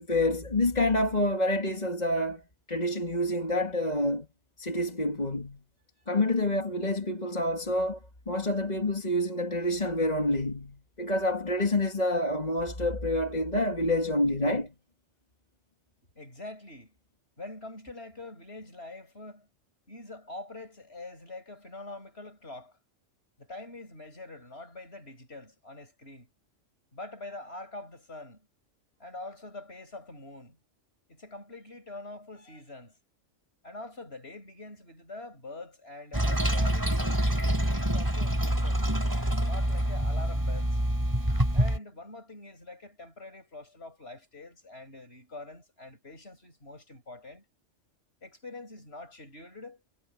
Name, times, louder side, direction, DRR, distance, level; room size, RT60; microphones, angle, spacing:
voice 1, 0.0-2.4 2.7-4.3 4.6-5.6 6.1-8.0 8.3-14.7, left 1 dB, 35° left, 2.7 m, -28 dB
voice 2, 16.1-16.9 17.4-19.5 19.9-22.8 23.4-26.3 26.9-28.5 29.0-30.6 31.1-32.9 33.6-38.8 39.4-40.8 41.5-47.4 48.2-49.8, left 2 dB, 55° left, 8.3 m, -45 dB
Toilet flush, 36.1-41.8, right 1 dB, 15° right, 4.5 m, -26 dB
omnidirectional pair, 1.2 m